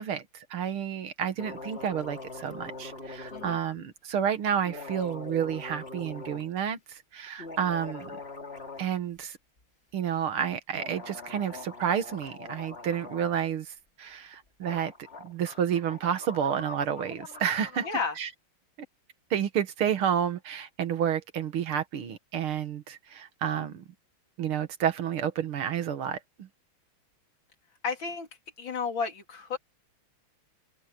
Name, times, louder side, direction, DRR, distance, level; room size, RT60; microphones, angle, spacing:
voice 1, 0.0-8.1 8.8-9.4 9.9-14.9 15.2-17.9 18.2-18.3 19.3-23.8 24.4-26.5, right 8 dB, 85° right, 2.4 m, -30 dB
sound 1, 1.4-3.6 4.6-6.5 7.3-8.9 9.2-9.3 10.7-13.4 14.3-14.4 14.6-17.9, left 3 dB, 30° left, 3.0 m, -43 dB
voice 2, 17.8-18.2 27.8-28.3 28.6-29.6, left 5 dB, 65° left, 3.4 m, -32 dB
open air
omnidirectional pair, 2.3 m